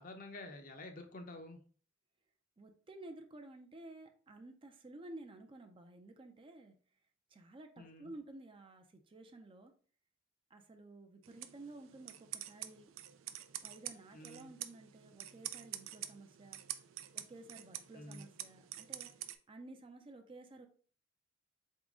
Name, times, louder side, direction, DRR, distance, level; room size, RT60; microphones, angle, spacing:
voice 1, 0.0-1.6 7.8-8.1 14.1-14.5 17.9-18.2, left 2 dB, 45° left, 5 dB, 0.6 m, -49 dB
voice 2, 2.6-6.8 7.3-9.7 10.5-12.9 13.6-16.6 17.1-19.1 19.5-20.7, right 2 dB, 25° right, 5 dB, 0.4 m, -53 dB
sound 1, 11.2-19.4, right 12 dB, 85° right, 0.4 m, -47 dB
4.0 x 3.7 x 3.6 m, 0.43 s
head